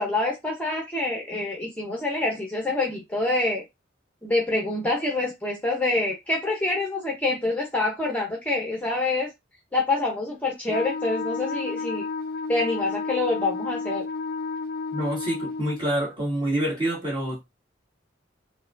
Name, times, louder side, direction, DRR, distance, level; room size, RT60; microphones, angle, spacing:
voice 1, 0.0-3.6 4.2-9.3 9.7-12.1 12.5-14.1, left 2 dB, 10° left, 0.7 m, -26 dB
Wind instrument woodwind instrument, 10.7-15.8, left 4 dB, 50° left, 0.4 m, -31 dB
voice 2, 14.9-17.4, right 1 dB, 25° right, 1.9 m, -27 dB
4.6 x 2.2 x 2.5 m
head